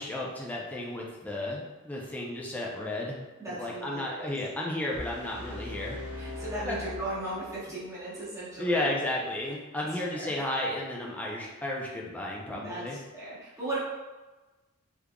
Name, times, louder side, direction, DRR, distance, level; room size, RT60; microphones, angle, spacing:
voice 1, 0.0-3.2 3.5-6.0 6.6-6.8 8.6-13.0, left 1 dB, 5° left, -3 dB, 0.5 m, -33 dB
voice 2, 3.4-4.3 6.2-8.9 9.7-10.3 12.5-13.8, right 2 dB, 15° right, -10 dB, 1.1 m, -37 dB
sound 1, 4.9-8.0, left 1 dB, 65° right, 1.1 m, -40 dB
3.7 x 3.3 x 2.2 m, 1.2 s
head